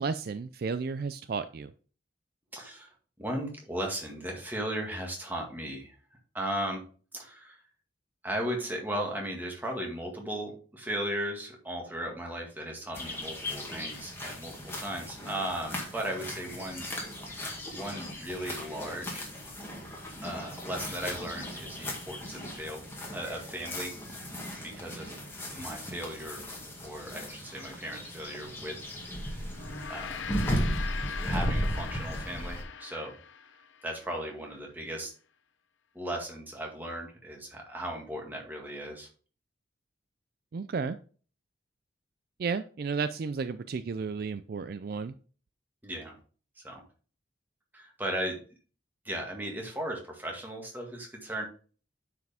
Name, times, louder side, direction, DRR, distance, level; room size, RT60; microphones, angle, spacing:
voice 1, 0.0-1.7 40.5-41.0 42.4-45.1, right 5 dB, 50° right, 12 dB, 0.3 m, -33 dB
voice 2, 2.5-2.9 3.2-6.8 7.1-7.6 8.2-16.9 17.7-19.3 20.2-22.8 23.1-23.9 24.6-25.2 25.6-26.4 26.8-28.7 29.0-29.4 29.9-30.2 31.2-33.2 33.8-35.1 35.9-39.1 45.8-46.2 46.6-46.8 47.7-48.4 49.0-51.5, right 1 dB, 10° right, 0 dB, 1.8 m, -36 dB
sound 1, 12.9-32.6, equal, 10° left, 1.9 m, -36 dB
Gong, 29.5-34.1, left 6 dB, 75° left, 0.6 m, -41 dB
9.4 x 4.8 x 3.5 m, 0.40 s
head